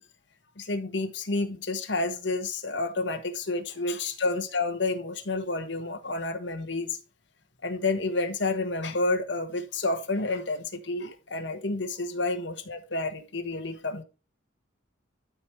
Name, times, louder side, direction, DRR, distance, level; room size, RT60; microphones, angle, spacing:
voice 1, 0.6-7.0 7.6-14.0, left 2 dB, 65° left, 1.4 m, -30 dB
12.5 x 4.8 x 3.3 m
head